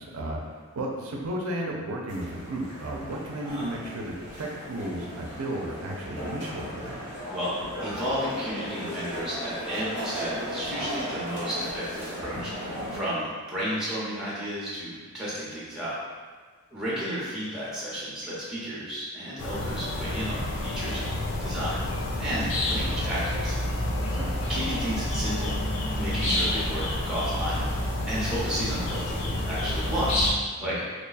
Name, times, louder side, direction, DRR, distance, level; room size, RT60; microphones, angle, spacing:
voice 1, 0.0-7.0 24.1-24.4 30.6-30.8, right 1 dB, 80° right, -1 dB, 0.5 m, -34 dB
sound 1, 2.1-13.0, equal, 45° left, 1.1 m, -36 dB
voice 2, 7.8-12.5 12.9-16.0 16.7-21.0 21.4-21.8 22.2-23.7 24.5-25.5 26.0-27.6 28.1-30.9, equal, 5° right, -9 dB, 0.8 m, -32 dB
sound 2, 19.4-30.3, left 1 dB, 60° left, 0.6 m, -29 dB
3.0 x 2.2 x 4.0 m, 1.5 s
head